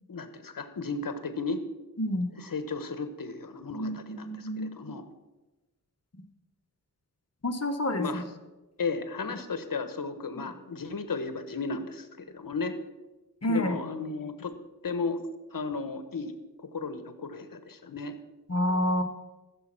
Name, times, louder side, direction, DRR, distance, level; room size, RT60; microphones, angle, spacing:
voice 1, 0.1-1.6 2.3-5.0 8.0-8.2 8.8-12.7 13.5-14.5 14.8-16.3 16.6-18.2, left 4 dB, 65° left, 9 dB, 1.3 m, -34 dB
voice 2, 2.0-2.3 3.7-4.8 7.4-8.0 13.4-13.7 18.5-19.0, left 1 dB, 45° left, 5 dB, 1.4 m, -28 dB
14.5 x 7.2 x 6.0 m, 1.1 s
wide cardioid pair, 85°, 36 cm